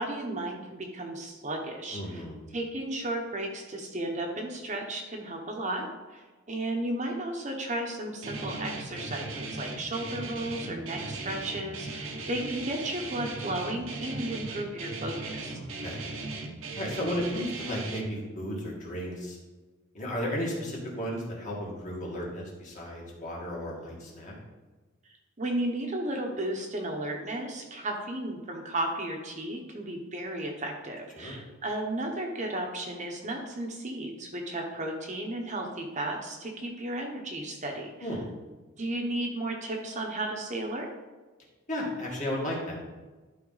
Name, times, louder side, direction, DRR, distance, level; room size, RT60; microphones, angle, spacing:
voice 1, 0.0-2.2 2.5-15.6 25.4-38.1 38.8-40.9, right 1 dB, 35° right, 1 dB, 0.9 m, -34 dB
voice 2, 1.9-2.3 15.6-16.0 16.8-19.4 19.9-24.4 31.1-31.4 38.0-38.2 41.7-42.8, equal, 35° left, -3 dB, 2.1 m, -34 dB
Guitar, 8.2-18.0, right 3 dB, 70° right, 0.9 m, -37 dB
12.0 x 4.3 x 4.0 m, 1.3 s
head